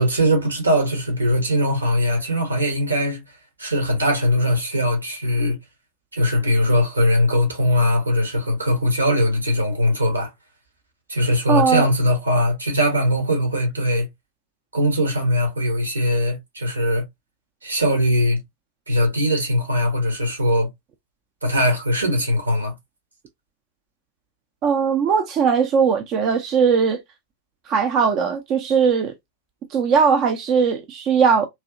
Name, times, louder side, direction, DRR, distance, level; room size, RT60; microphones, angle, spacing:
voice 1, 0.0-3.2 3.6-5.6 6.1-10.3 11.1-14.1 14.7-17.0 17.6-18.4 18.9-20.7 21.4-22.7, equal, 80° right, 1.4 m, -20 dB
voice 2, 11.5-11.9 24.6-27.0 27.7-29.1 29.7-31.5, right 6 dB, 35° right, 0.5 m, -19 dB
3.1 x 2.7 x 2.4 m
figure-of-eight pair, 90°, 0 cm